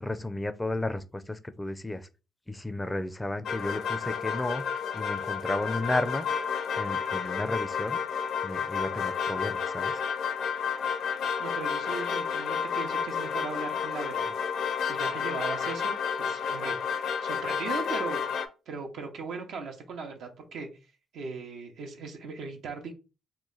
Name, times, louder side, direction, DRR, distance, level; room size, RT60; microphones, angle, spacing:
voice 1, 0.0-2.1 2.5-4.6 4.9-6.3 6.8-8.0 8.4-10.0, left 2 dB, 10° left, 0.4 m, -33 dB
sound 1, 3.4-18.5, left 6 dB, 70° left, 0.5 m, -31 dB
voice 2, 11.4-14.3 14.9-16.8 17.2-18.2 18.7-20.7 21.1-22.9, right 4 dB, 75° right, 0.7 m, -38 dB
3.0 x 2.2 x 3.8 m
cardioid pair, 90°, 0 cm